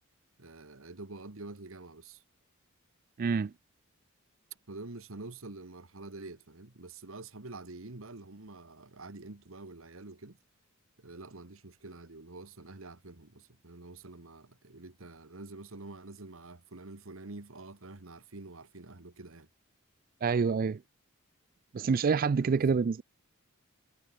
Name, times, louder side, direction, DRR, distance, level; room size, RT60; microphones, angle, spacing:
voice 1, 0.4-2.2 4.7-10.4 11.0-19.5 22.4-22.9, right 2 dB, 65° right, 1.6 m, -47 dB
voice 2, 3.2-3.5 20.2-20.8 21.7-23.0, right 5 dB, 40° right, 0.4 m, -27 dB
head